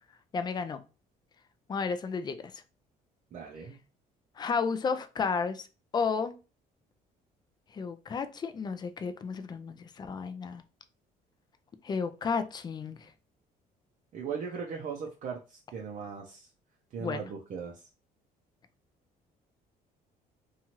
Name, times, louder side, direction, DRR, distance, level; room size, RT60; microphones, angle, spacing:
voice 1, 0.3-0.8 1.7-2.4 4.4-5.7 5.9-6.3 7.7-10.6 11.8-13.1 17.0-17.2, left 5 dB, 25° left, 0.3 m, -32 dB
voice 2, 3.3-3.8 14.1-16.5 16.9-17.8, right 6 dB, 50° right, 0.5 m, -38 dB
2.8 x 2.4 x 2.9 m
cardioid pair, 110°, 17 cm